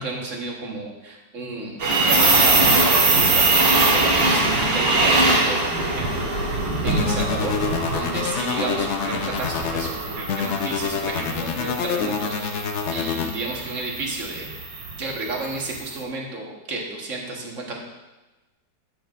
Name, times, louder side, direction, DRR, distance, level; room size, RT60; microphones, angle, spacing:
voice 1, 0.0-6.6 6.8-14.5 15.0-17.8, right 2 dB, 45° right, -1 dB, 1.7 m, -32 dB
sound 1, 1.8-15.8, right 2 dB, 80° right, 2.2 m, -22 dB
sound 2, 6.9-9.9 10.3-13.3, left 6 dB, 90° left, 0.6 m, -27 dB
13.0 x 8.0 x 2.5 m, 1.1 s
omnidirectional pair, 2.0 m